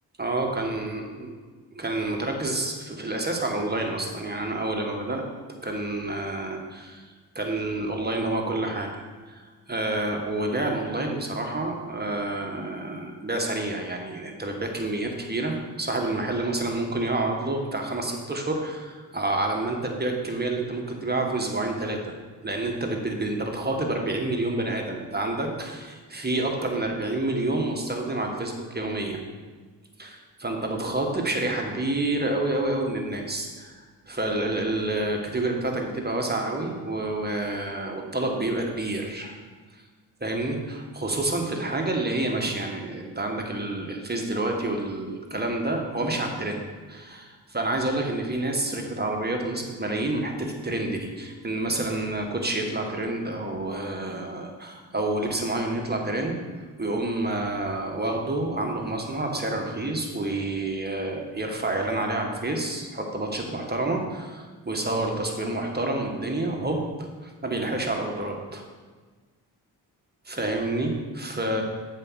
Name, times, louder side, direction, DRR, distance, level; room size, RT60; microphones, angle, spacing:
voice 1, 0.2-1.3 1.7-5.2 5.6-7.0 7.3-9.4 9.7-22.2 22.4-29.3 30.0-39.3 40.2-56.4 56.8-68.6 70.3-71.6, right 2 dB, 20° right, 2 dB, 1.7 m, -28 dB
7.5 x 4.7 x 6.4 m, 1.4 s
supercardioid pair, 45°, 42 cm